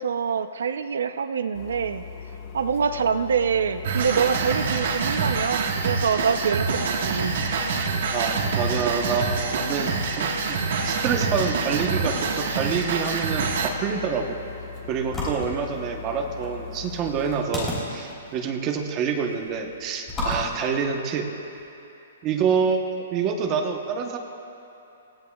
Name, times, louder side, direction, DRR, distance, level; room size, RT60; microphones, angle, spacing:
voice 1, 0.0-2.0 2.5-7.4, right 6 dB, 75° right, 10 dB, 0.5 m, -25 dB
sound 1, 1.5-17.4, left 6 dB, 25° left, 1.1 m, -39 dB
sound 2, 3.8-13.7, right 5 dB, 50° right, 1.4 m, -26 dB
voice 2, 8.1-14.4 14.9-21.3 22.2-24.2, right 6 dB, 20° right, 3 dB, 0.9 m, -27 dB
sound 3, 14.0-21.6, left 1 dB, 10° left, 3.3 m, -35 dB
27.0 x 15.0 x 2.3 m, 2.9 s
hypercardioid pair, 175°, 0 cm